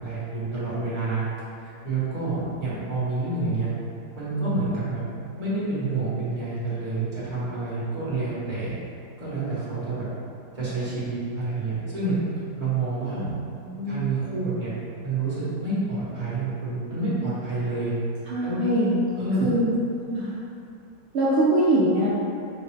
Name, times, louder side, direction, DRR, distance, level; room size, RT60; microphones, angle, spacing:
voice 1, 0.0-1.2 1.8-3.7 4.1-5.1 5.4-8.8 9.2-10.1 10.5-12.2 12.6-13.2 13.8-14.7 15.0-17.9 18.4-18.6 19.1-19.5, right 3 dB, 30° right, -10 dB, 0.9 m, -28 dB
voice 2, 13.6-14.0 18.3-19.0 19.4-19.7 20.1-20.3 21.1-22.1, right 1 dB, 80° right, -8 dB, 0.6 m, -23 dB
3.9 x 2.2 x 3.2 m, 2.5 s
omnidirectional pair, 1.8 m